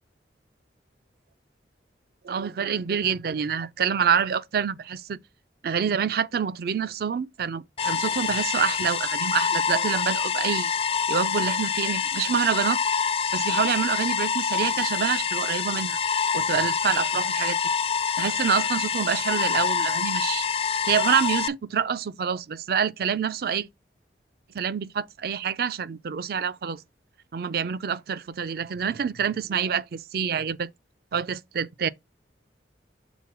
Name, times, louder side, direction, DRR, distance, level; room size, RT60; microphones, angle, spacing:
voice 1, 2.2-5.2 5.6-10.7 11.1-12.8 13.3-16.0 16.3-17.6 18.2-20.5 20.9-23.7 24.5-26.8 27.3-30.7 31.1-31.9, right 7 dB, 55° right, 0.4 m, -27 dB
sound 1, 7.8-21.5, left 6 dB, 30° left, 0.3 m, -26 dB
6.1 x 3.8 x 5.8 m
head